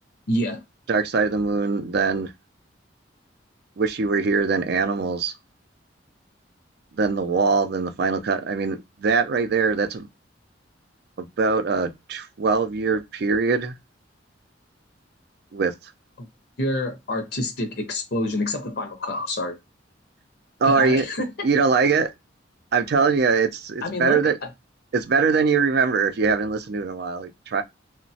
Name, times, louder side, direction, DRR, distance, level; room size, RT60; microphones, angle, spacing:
voice 1, 0.3-0.6 16.6-19.6 20.6-21.3 23.8-24.2, left 1 dB, 60° left, 0.6 m, -27 dB
voice 2, 0.9-2.3 3.8-5.3 7.0-10.1 11.2-13.7 15.5-15.7 20.6-21.0 21.4-22.1 22.7-24.4 24.9-27.6, right 4 dB, 60° right, 0.4 m, -22 dB
2.9 x 2.1 x 2.7 m
head